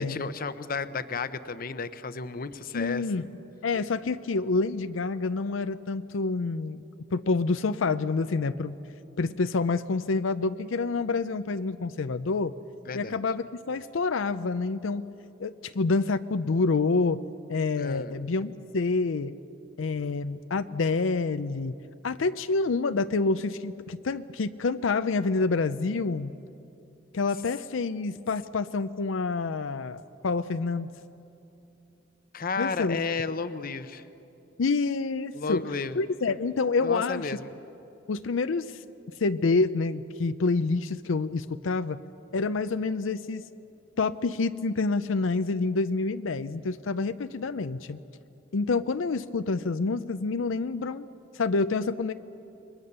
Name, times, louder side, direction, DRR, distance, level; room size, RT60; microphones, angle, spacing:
voice 1, 0.0-3.1 12.9-13.2 17.8-18.2 32.3-34.0 35.3-36.0 36.8-37.5, left 4 dB, 50° left, 12 dB, 0.8 m, -32 dB
voice 2, 2.7-3.2 3.6-6.8 7.1-8.8 9.2-12.5 12.9-15.1 15.4-17.2 17.5-19.4 19.8-21.7 22.0-26.3 27.1-30.9 32.6-33.0 34.6-35.7 35.9-37.3 38.1-38.8 39.2-42.0 42.3-43.5 44.0-48.0 48.5-51.1 51.3-52.1, left 3 dB, 85° left, 11 dB, 0.6 m, -27 dB
28.5 x 22.5 x 6.8 m, 2.8 s
head